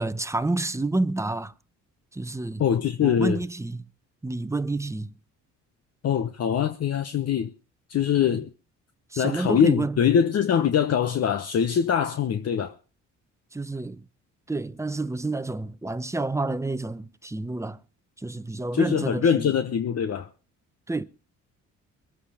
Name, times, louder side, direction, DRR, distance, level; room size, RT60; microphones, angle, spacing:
voice 1, 0.0-1.5 2.1-2.6 3.0-3.8 4.2-5.1 9.1-10.0 13.5-14.0 14.5-17.8 18.2-19.5 20.9-21.0, right 2 dB, 10° right, 0.8 m, -29 dB
voice 2, 2.6-3.4 6.0-7.5 7.9-8.5 9.2-12.7 18.7-20.3, left 8 dB, 55° left, 1.1 m, -23 dB
23.0 x 8.2 x 5.0 m
cardioid pair, 90°, 30 cm